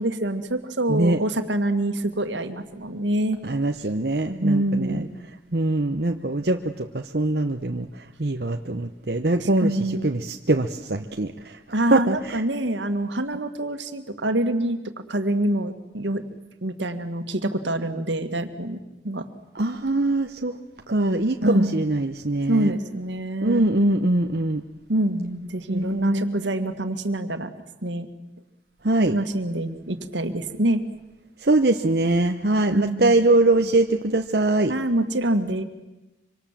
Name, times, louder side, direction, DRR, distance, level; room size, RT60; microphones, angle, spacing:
voice 1, 0.0-3.4 4.4-5.0 9.4-10.1 11.7-14.8 15.1-16.2 16.6-19.2 21.4-21.8 22.5-23.6 24.9-27.5 27.8-28.1 29.1-30.8 32.7-33.2 34.7-35.6, right 1 dB, 80° right, 8 dB, 2.0 m, -25 dB
voice 2, 0.9-1.2 3.4-5.1 5.5-11.6 11.9-12.4 19.5-20.6 20.9-22.7 23.4-24.6 25.7-26.4 28.8-29.2 31.4-34.7, right 2 dB, 60° right, 4 dB, 1.0 m, -22 dB
25.5 x 25.5 x 7.5 m, 1.0 s
head